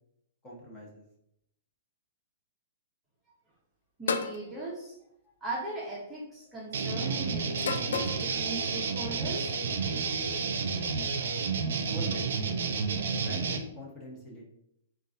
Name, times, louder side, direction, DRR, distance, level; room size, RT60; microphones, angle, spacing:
voice 1, 0.4-1.0 11.9-12.4 13.1-14.4, left 1 dB, 20° left, -3 dB, 0.9 m, -43 dB
voice 2, 4.0-5.0 5.4-9.6, right 2 dB, 10° right, -6 dB, 0.6 m, -39 dB
sound 1, 4.1-4.4 5.6-5.9 7.6-8.3, left 5 dB, 80° left, 0.3 m, -31 dB
sound 2, 6.7-13.6, right 5 dB, 75° right, 0.4 m, -31 dB
3.9 x 2.3 x 2.5 m, 0.77 s
hypercardioid pair, 150°, 0 cm